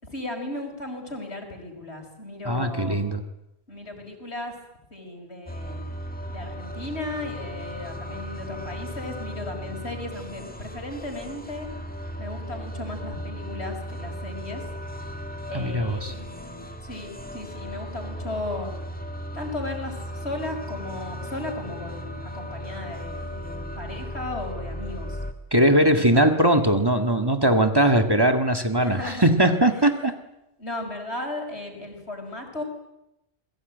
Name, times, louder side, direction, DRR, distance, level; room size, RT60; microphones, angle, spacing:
voice 1, 0.0-3.0 3.7-4.6 4.9-5.8 6.3-11.7 12.2-14.6 15.5-18.7 19.3-25.2 25.9-26.4 28.8-29.4 30.6-32.6, left 2 dB, 75° left, 4 dB, 5.8 m, -36 dB
voice 2, 2.5-3.2 15.5-16.1 25.5-30.1, right 1 dB, 20° right, 5 dB, 1.9 m, -20 dB
sound 1, 5.5-25.3, equal, 10° left, 2.1 m, -36 dB
28.0 x 21.0 x 9.2 m, 0.90 s
omnidirectional pair, 1.1 m